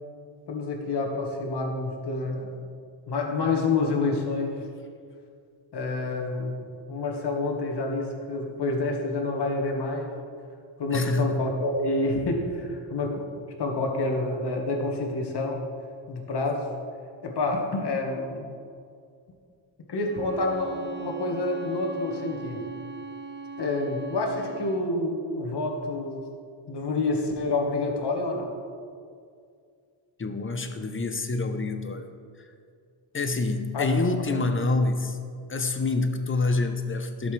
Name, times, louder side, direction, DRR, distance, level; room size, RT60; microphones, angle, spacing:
voice 1, 0.5-2.5 3.1-4.6 5.7-10.1 10.8-13.2 13.6-15.6 16.1-16.6 17.2-18.5 19.9-22.6 23.6-26.2 26.7-28.5 33.7-33.9, left 2 dB, 55° left, 1 dB, 1.6 m, -28 dB
voice 2, 10.9-11.4 30.2-32.1 33.1-35.2 35.5-37.3, left 3 dB, 25° left, 7 dB, 0.8 m, -27 dB
Bowed string instrument, 20.1-24.9, right 3 dB, 20° right, 0.7 m, -40 dB
12.0 x 7.2 x 3.3 m, 2.3 s
cardioid pair, 85°, 47 cm